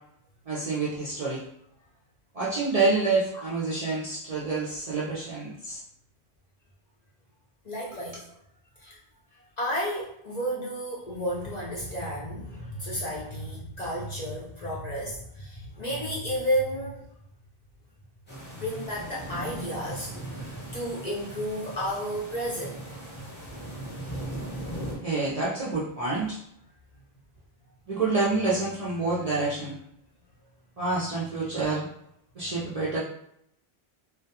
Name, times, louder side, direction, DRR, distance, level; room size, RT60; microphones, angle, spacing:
voice 1, 0.5-1.4 2.3-5.8 7.9-8.0 24.4-24.5 25.0-26.4 27.9-29.8 30.8-31.9 32.4-33.0, right 3 dB, 50° right, -7 dB, 0.4 m, -28 dB
voice 2, 7.6-8.3 8.8-9.0 9.6-17.1 18.5-23.0, equal, 55° left, -5 dB, 0.5 m, -32 dB
sound 1, 18.3-25.0, right 1 dB, 10° left, 0.7 m, -38 dB
2.2 x 2.2 x 2.7 m, 0.75 s
omnidirectional pair, 1.1 m